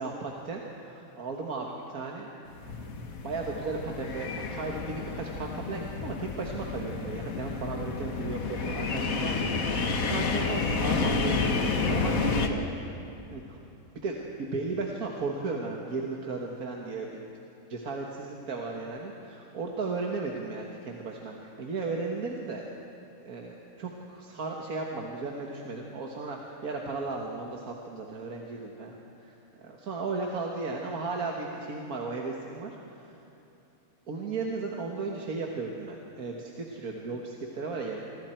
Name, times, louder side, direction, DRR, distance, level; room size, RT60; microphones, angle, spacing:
voice 1, 0.0-2.3 3.2-12.6 13.3-13.6 14.0-17.2 17.7-22.6 23.2-33.2 34.1-38.0, right 3 dB, 85° right, 0 dB, 2.0 m, -35 dB
sound 1, 2.5-12.5, left 4 dB, 70° left, 1.7 m, -30 dB
26.0 x 25.0 x 4.5 m, 2.8 s
omnidirectional pair, 1.5 m